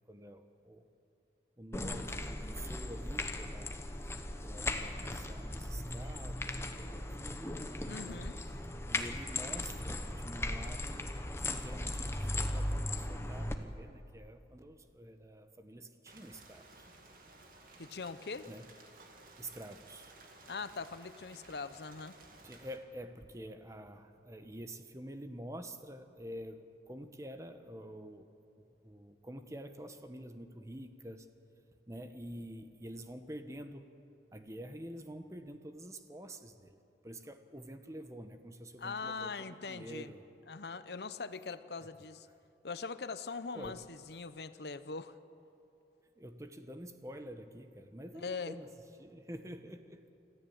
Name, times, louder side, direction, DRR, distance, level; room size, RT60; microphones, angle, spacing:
voice 1, 0.1-0.8 1.6-3.8 4.4-7.6 8.0-8.3 8.9-11.1 11.4-16.9 18.5-18.7 19.4-20.1 22.4-28.3 28.8-31.3 31.9-33.9 34.3-36.8 37.0-40.2 41.8-41.9 43.5-43.8 46.2-48.7 49.0-50.0, equal, 20° right, 8 dB, 1.0 m, -48 dB
sound 1, 1.7-13.6, left 1 dB, 15° left, 1.1 m, -38 dB
voice 2, 7.9-8.3 17.8-18.5 20.5-22.1 38.8-40.1 40.5-42.3 42.6-45.2 48.2-48.6, left 4 dB, 70° left, 13 dB, 0.8 m, -41 dB
Rain, 16.1-22.8, right 2 dB, 50° right, 2.4 m, -57 dB
26.0 x 14.5 x 8.7 m, 2.7 s
head